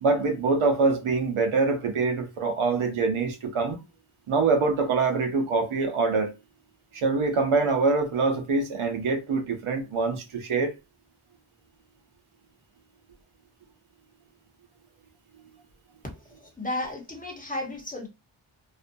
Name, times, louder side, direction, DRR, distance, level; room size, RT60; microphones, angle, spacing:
voice 1, 0.0-3.8 4.3-6.3 6.9-10.7, right 4 dB, 85° right, 0.8 m, -24 dB
voice 2, 16.1-18.1, left 1 dB, 15° left, 0.9 m, -34 dB
2.6 x 2.2 x 2.6 m
wide cardioid pair, 85°, 48 cm